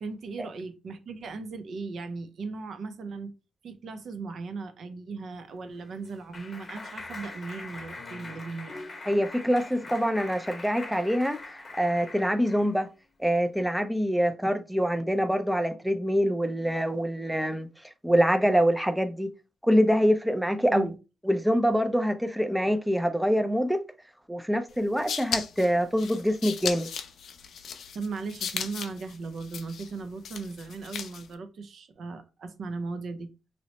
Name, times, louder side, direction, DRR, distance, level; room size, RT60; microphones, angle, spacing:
voice 1, 0.0-3.3 3.6-8.8 20.7-21.0 27.9-33.3, right 4 dB, 65° right, 0.5 m, -37 dB
Clapping, 5.5-12.8, left 3 dB, 35° left, 0.8 m, -43 dB
voice 2, 9.0-12.9 13.2-17.7 18.0-19.3 19.6-20.9 21.2-23.8 24.3-26.9, equal, 5° right, 0.4 m, -25 dB
sound 1, 24.7-31.3, left 7 dB, 80° left, 0.4 m, -36 dB
2.9 x 2.0 x 4.0 m
cardioid pair, 95°, 0 cm